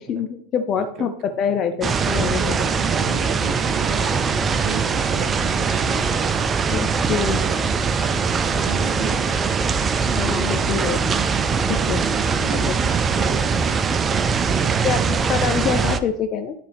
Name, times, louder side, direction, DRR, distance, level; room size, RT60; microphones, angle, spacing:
voice 1, 0.0-2.6 6.7-7.4 10.2-11.1 11.7-12.0 12.4-12.7 13.1-13.2 14.8-16.5, left 7 dB, 40° left, 7 dB, 0.5 m, -25 dB
voice 2, 0.7-1.6 2.3-6.3 7.1-9.4 12.1-13.5 14.4-15.1, right 6 dB, 45° right, 9 dB, 1.0 m, -34 dB
sound 1, 1.8-16.0, right 5 dB, 25° right, 0.5 m, -21 dB
11.0 x 4.0 x 3.4 m, 0.68 s
hypercardioid pair, 85°, 0 cm